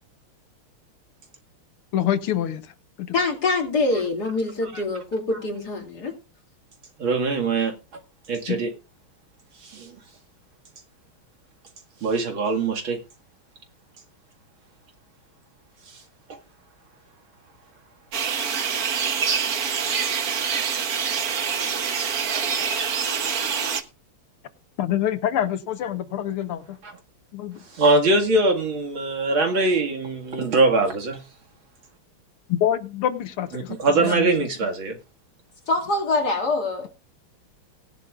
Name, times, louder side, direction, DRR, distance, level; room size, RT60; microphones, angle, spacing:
voice 1, 1.9-2.7 3.0-3.1 8.5-8.6 24.8-26.8 27.3-27.6 32.5-34.3, left 11 dB, 85° left, 2.0 m, -26 dB
voice 2, 3.1-6.1 35.7-36.9, left 3 dB, 45° left, 3.4 m, -24 dB
voice 3, 7.0-7.7 8.3-8.7 9.6-9.9 12.0-13.0 15.9-16.0 19.6-19.9 22.3-22.4 26.8-27.0 27.7-31.2 33.5-35.0, right 2 dB, 65° right, 2.9 m, -22 dB
sound 1, 18.1-23.8, right 6 dB, 50° right, 1.4 m, -25 dB
18.5 x 11.0 x 2.5 m
omnidirectional pair, 2.4 m